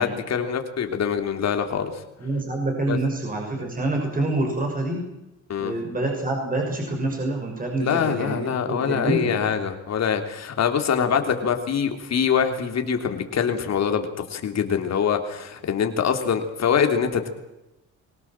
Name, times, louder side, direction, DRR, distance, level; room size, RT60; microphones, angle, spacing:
voice 1, 0.0-1.9 2.9-3.0 5.5-5.7 7.8-17.3, left 7 dB, 60° left, 5 dB, 3.4 m, -24 dB
voice 2, 2.2-5.0 5.6-9.5, right 2 dB, 30° right, 1 dB, 6.4 m, -27 dB
23.5 x 18.0 x 7.6 m, 0.95 s
cardioid pair, 90°, 30 cm